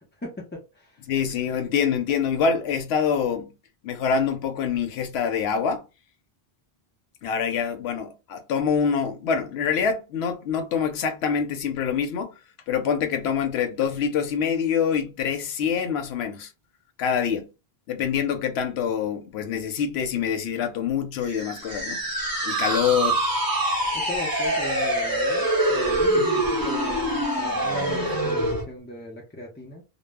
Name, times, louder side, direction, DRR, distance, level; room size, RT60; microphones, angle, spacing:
voice 1, 0.2-1.0 23.9-29.8, left 1 dB, 15° left, 0.4 m, -38 dB
voice 2, 1.1-3.5 3.8-5.8 7.2-12.3 12.7-16.5 17.0-17.5 17.9-22.0 22.4-23.2 26.2-26.4, left 7 dB, 90° left, 0.8 m, -25 dB
sound 1, 21.2-28.6, right 1 dB, 25° right, 0.7 m, -25 dB
2.0 x 2.0 x 3.4 m
omnidirectional pair, 1.0 m